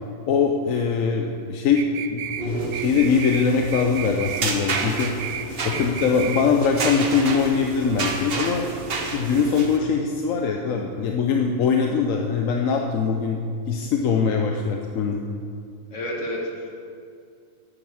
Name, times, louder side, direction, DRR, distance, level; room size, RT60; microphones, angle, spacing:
voice 1, 0.3-5.1 5.6-8.7 9.1-13.4 13.7-15.2, left 5 dB, 85° left, 2 dB, 1.1 m, -22 dB
sound 1, 1.8-2.5 2.7-3.5 3.7-4.5 4.7-5.5 5.7-6.5, right 10 dB, 75° right, 0.9 m, -32 dB
sound 2, 2.3-9.8, right 4 dB, 50° right, 1.1 m, -30 dB
voice 2, 15.9-16.7, equal, 65° left, -1 dB, 2.1 m, -31 dB
9.1 x 8.8 x 6.3 m, 2.3 s
omnidirectional pair, 1.3 m